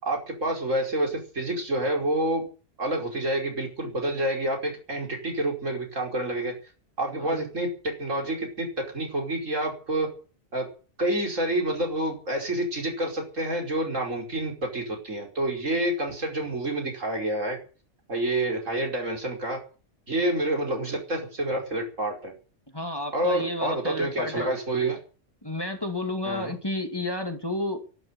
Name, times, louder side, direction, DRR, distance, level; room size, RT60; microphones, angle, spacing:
voice 1, 0.0-2.4 2.8-6.5 7.0-10.1 10.5-10.7 11.0-17.6 18.1-19.6 20.1-22.3 23.1-25.0 26.2-26.6, right 1 dB, 80° right, 2 dB, 5.4 m, -28 dB
voice 2, 7.1-7.5 22.7-24.5 25.4-27.8, left 1 dB, 20° left, 5 dB, 2.4 m, -31 dB
12.0 x 11.5 x 9.8 m, 0.37 s
omnidirectional pair, 1.3 m